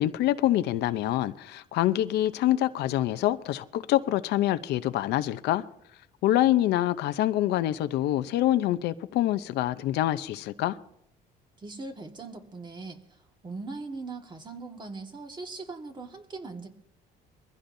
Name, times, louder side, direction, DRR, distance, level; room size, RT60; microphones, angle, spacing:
voice 1, 0.0-5.6 6.2-10.8, left 14 dB, 80° left, 0.7 m, -26 dB
voice 2, 11.6-13.0 13.4-16.7, right 3 dB, 25° right, 1.8 m, -40 dB
22.5 x 15.5 x 2.7 m
cardioid pair, 110°, 17 cm